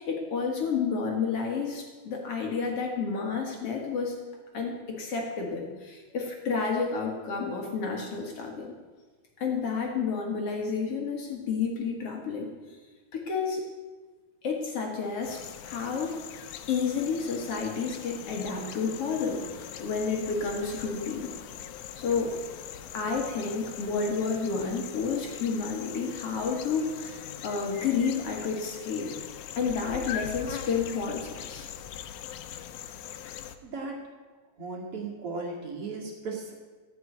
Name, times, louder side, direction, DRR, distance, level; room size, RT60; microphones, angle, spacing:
voice 1, 0.0-4.2 4.5-8.7 9.4-12.5 13.1-13.6 14.4-21.3 22.0-22.4 22.9-31.7, left 5 dB, 55° left, 1 dB, 2.5 m, -30 dB
sound 1, 15.2-33.6, left 10 dB, 80° left, 2.1 m, -41 dB
voice 2, 33.6-33.9 34.6-36.5, right 3 dB, 50° right, -1 dB, 2.9 m, -36 dB
15.0 x 6.2 x 9.3 m, 1.3 s
omnidirectional pair, 3.4 m